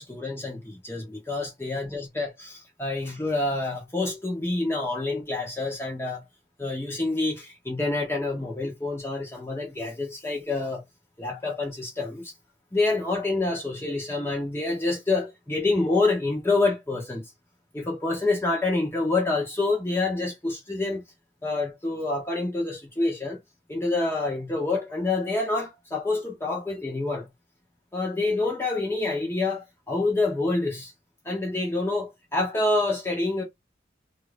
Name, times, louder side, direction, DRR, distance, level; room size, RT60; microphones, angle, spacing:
voice 1, 0.0-6.2 6.6-10.8 11.2-12.3 12.7-17.3 17.7-21.0 21.4-23.4 23.7-27.3 27.9-30.9 31.2-33.4, left 2 dB, 15° left, 0.7 m, -27 dB
2.5 x 2.4 x 3.2 m
head